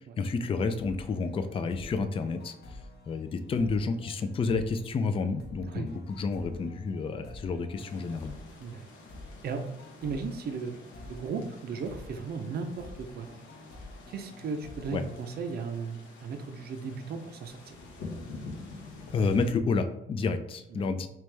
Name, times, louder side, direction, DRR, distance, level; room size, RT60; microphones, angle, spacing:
voice 1, 0.2-2.8 3.1-8.4 14.9-15.0 19.1-21.1, left 4 dB, 30° left, 9 dB, 0.3 m, -30 dB
sound 1, 0.8-16.2, left 2 dB, 55° left, 0.8 m, -49 dB
sound 2, 7.7-19.5, left 3 dB, 85° left, 0.9 m, -48 dB
voice 2, 10.0-13.3 14.1-17.8 20.8-20.9, right 5 dB, 55° right, 6 dB, 0.5 m, -36 dB
3.3 x 3.0 x 3.3 m, 0.84 s
cardioid pair, 90°, 20 cm